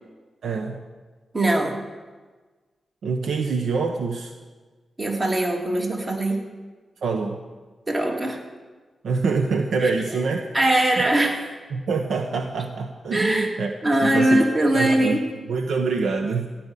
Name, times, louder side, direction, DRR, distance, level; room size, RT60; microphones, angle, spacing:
voice 1, 0.4-0.8 3.0-4.3 7.0-7.4 9.0-10.5 10.9-11.1 11.7-13.7 14.0-15.2 15.5-16.5, right 4 dB, 80° right, 4 dB, 1.0 m, -25 dB
voice 2, 1.3-1.8 5.0-6.4 7.9-8.4 9.8-10.2 10.5-11.5 13.1-13.5 13.8-15.2, right 1 dB, 35° right, 1 dB, 2.9 m, -21 dB
15.0 x 6.1 x 9.9 m, 1.3 s
cardioid pair, 65°, 0 cm